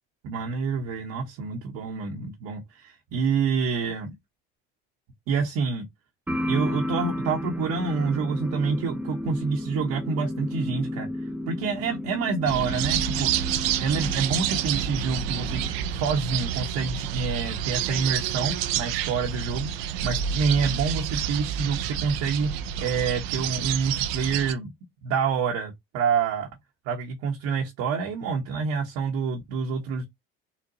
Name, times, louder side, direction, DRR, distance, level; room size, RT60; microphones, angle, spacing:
voice 1, 0.2-4.1 5.3-5.8 6.5-11.1 11.5-15.6 15.9-22.5 22.8-24.7 25.0-26.5 26.9-30.0, right 5 dB, 65° right, 0.9 m, -27 dB
sound 1, 6.3-15.8, left 1 dB, 5° right, 0.4 m, -33 dB
sound 2, 12.5-24.5, right 9 dB, 85° right, 0.5 m, -29 dB
4.0 x 2.2 x 2.5 m
supercardioid pair, 85°, 29 cm